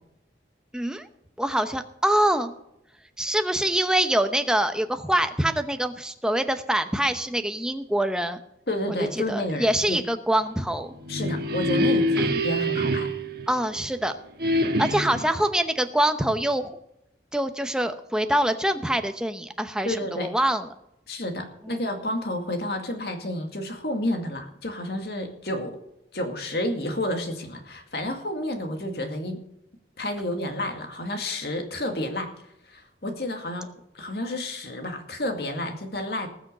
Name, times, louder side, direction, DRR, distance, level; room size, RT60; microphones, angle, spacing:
voice 1, 0.7-1.1 1.4-2.5 3.2-8.4 9.1-11.0 12.2-12.4 13.5-14.1 14.8-16.7 17.3-20.7 21.7-21.8, right 1 dB, 5° right, 7 dB, 0.8 m, -25 dB
voice 2, 8.7-10.0 11.1-13.1 19.8-20.3 21.1-25.8 26.1-29.4 30.0-32.3 32.7-33.7 33.9-36.3, left 1 dB, 60° left, 5 dB, 2.2 m, -30 dB
sound 1, 10.8-13.9 14.4-15.4, equal, 55° right, 1.5 m, -26 dB
19.5 x 6.5 x 6.7 m, 0.81 s
head